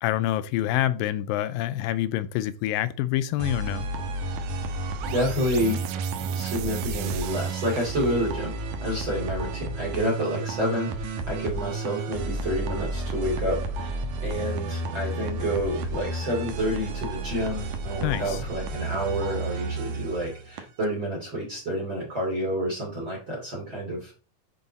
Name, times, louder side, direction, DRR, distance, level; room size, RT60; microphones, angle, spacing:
voice 1, 0.0-3.9 18.0-18.4, left 13 dB, 85° left, 2.0 m, -26 dB
sound 1, 3.4-20.8, right 2 dB, 65° right, 2.2 m, -32 dB
sound 2, 4.2-8.5, right 14 dB, 85° right, 2.5 m, -41 dB
voice 2, 5.0-5.8 6.3-8.5 8.8-24.1, equal, 35° right, 3.0 m, -29 dB
8.0 x 5.7 x 4.1 m
omnidirectional pair, 4.5 m